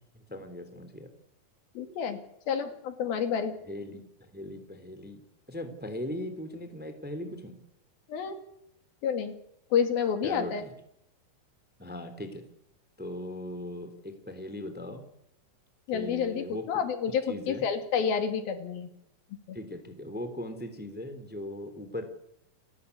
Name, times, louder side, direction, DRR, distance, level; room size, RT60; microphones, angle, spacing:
voice 1, 0.3-1.1 3.6-7.6 10.2-10.7 11.8-12.4 13.0-15.0 15.9-16.8 17.3-17.6 19.5-22.0, left 1 dB, 5° right, 8 dB, 2.5 m, -39 dB
voice 2, 1.8-3.5 8.1-8.4 9.0-9.4 9.7-10.6 15.9-18.9 19.5-19.6, left 7 dB, 90° left, 7 dB, 4.1 m, -29 dB
29.0 x 14.0 x 8.4 m, 0.77 s
omnidirectional pair, 4.1 m